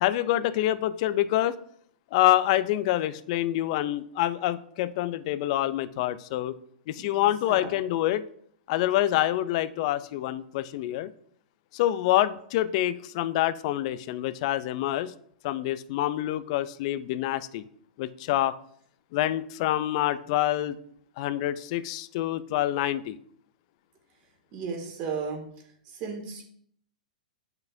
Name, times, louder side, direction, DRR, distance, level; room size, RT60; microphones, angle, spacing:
voice 1, 0.0-1.6 2.1-6.5 6.9-8.2 8.7-11.1 11.7-15.1 15.4-17.7 18.0-18.5 19.1-20.8 21.2-23.2, left 14 dB, 50° left, 15 dB, 0.4 m, -26 dB
voice 2, 24.5-25.4 25.9-26.4, right 5 dB, 40° right, 1 dB, 2.1 m, -34 dB
8.7 x 5.9 x 2.7 m, 0.65 s
hypercardioid pair, 125°, 4 cm